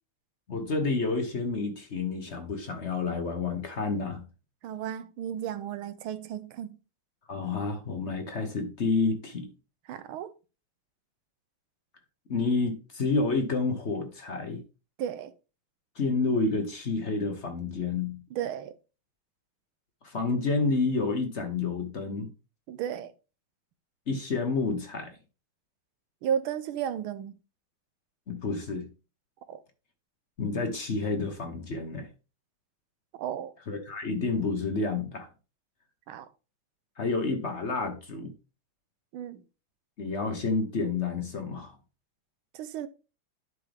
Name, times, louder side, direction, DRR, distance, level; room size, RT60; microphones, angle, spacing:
voice 1, 0.5-4.3 7.3-9.5 12.3-14.6 15.9-18.2 20.0-22.3 24.1-25.2 28.3-28.9 30.4-32.1 33.7-35.3 37.0-38.3 40.0-41.7, left 3 dB, 45° left, 1.0 m, -29 dB
voice 2, 4.6-6.8 9.9-10.3 15.0-15.3 18.3-18.8 22.7-23.1 26.2-27.4 29.5-29.6 33.2-33.5 36.1-36.3 39.1-39.4 42.5-42.9, right 9 dB, 80° right, 1.6 m, -34 dB
11.0 x 4.7 x 3.4 m
omnidirectional pair, 2.3 m